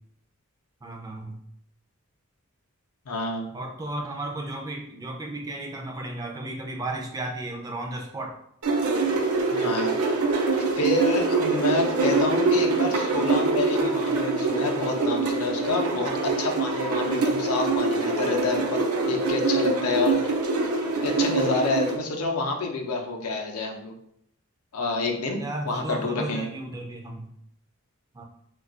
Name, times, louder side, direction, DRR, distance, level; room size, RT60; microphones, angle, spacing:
voice 1, 0.8-1.4 3.5-8.4 25.4-27.3 28.1-28.2, right 2 dB, 15° right, 1 dB, 0.3 m, -34 dB
voice 2, 3.1-3.5 9.5-9.9 10.6-18.8 19.1-20.2 21.0-23.9 24.7-26.5, left 3 dB, 90° left, 2 dB, 0.5 m, -28 dB
sound 1, 8.6-22.0, right 3 dB, 90° right, 0.5 m, -24 dB
2.3 x 2.3 x 3.7 m, 0.73 s
head